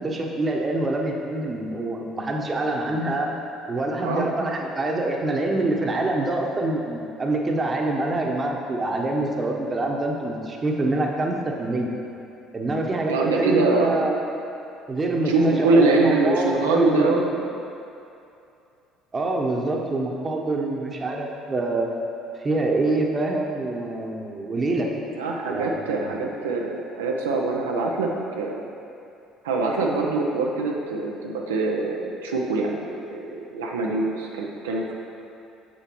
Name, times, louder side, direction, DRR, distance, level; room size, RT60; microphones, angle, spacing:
voice 1, 0.0-3.3 3.7-11.9 12.5-14.2 14.9-17.2 19.1-21.9 22.4-24.9 25.5-26.2, right 2 dB, 30° right, 0 dB, 0.9 m, -25 dB
voice 2, 13.1-13.9 15.3-17.3 25.1-28.6 29.4-34.9, right 3 dB, 85° right, -1 dB, 0.5 m, -24 dB
7.0 x 6.8 x 3.1 m, 2.7 s
hypercardioid pair, 60°, 0 cm